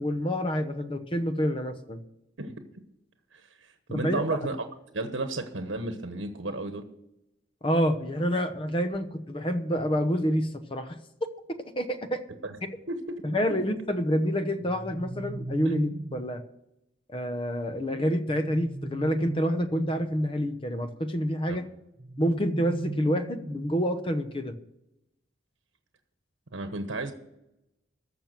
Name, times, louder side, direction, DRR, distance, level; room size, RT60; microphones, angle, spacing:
voice 1, 0.0-2.0 3.9-4.2 7.6-11.0 11.8-12.2 13.2-16.4 17.1-21.7 22.2-24.5, equal, 25° left, 9 dB, 0.9 m, -28 dB
voice 2, 3.3-4.6 4.9-6.8 12.4-12.6 12.9-13.2 13.5-13.6 15.6-15.7 21.5-21.6 26.5-27.1, right 2 dB, 85° right, 7 dB, 1.2 m, -33 dB
sound 1, 14.6-16.4 18.3-20.1 22.0-23.9, right 2 dB, 30° right, 0.4 m, -38 dB
14.5 x 5.9 x 7.4 m, 0.86 s
head